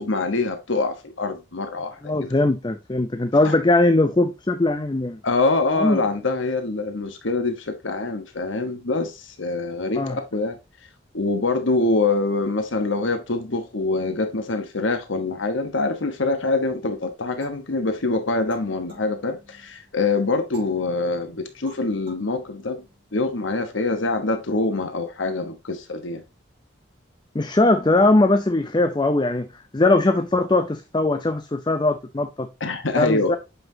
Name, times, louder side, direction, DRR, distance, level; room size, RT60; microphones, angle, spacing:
voice 1, 0.0-2.3 3.4-3.5 5.2-10.6 11.1-22.8 23.1-26.2 32.6-33.3, left 3 dB, 70° left, 1.1 m, -25 dB
voice 2, 2.0-5.2 5.8-6.0 10.0-10.2 27.3-29.5 29.7-32.5 33.0-33.4, left 2 dB, 20° left, 0.5 m, -20 dB
kalimba for kids, 17.4-19.9 20.5-23.3, right 2 dB, 25° right, 4.7 m, -49 dB
7.9 x 5.8 x 2.8 m
head